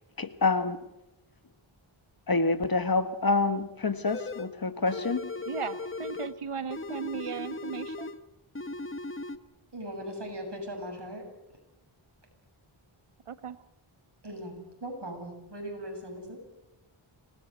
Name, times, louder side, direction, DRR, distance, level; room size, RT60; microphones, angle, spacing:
voice 1, 0.2-0.8 2.3-5.3, left 3 dB, 45° left, 1.4 m, -27 dB
sound 1, 4.0-4.5 4.9-6.4 6.7-8.2 8.5-9.4, left 3 dB, 25° left, 1.0 m, -37 dB
voice 2, 5.5-8.1 13.3-13.6, right 6 dB, 85° right, 1.4 m, -36 dB
voice 3, 9.7-11.2 14.2-14.5 14.8-16.4, equal, 55° right, 7.2 m, -39 dB
26.5 x 19.5 x 8.0 m
wide cardioid pair, 90°, 50 cm